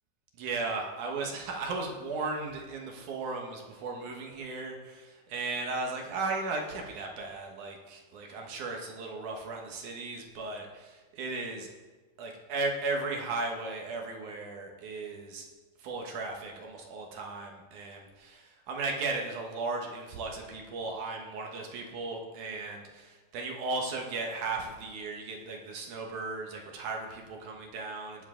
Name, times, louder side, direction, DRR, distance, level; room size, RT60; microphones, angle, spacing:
voice 1, 0.4-11.7 12.2-15.5 15.8-28.3, right 3 dB, 65° right, 1 dB, 2.0 m, -36 dB
19.5 x 7.3 x 3.7 m, 1.3 s
omnidirectional pair, 5.1 m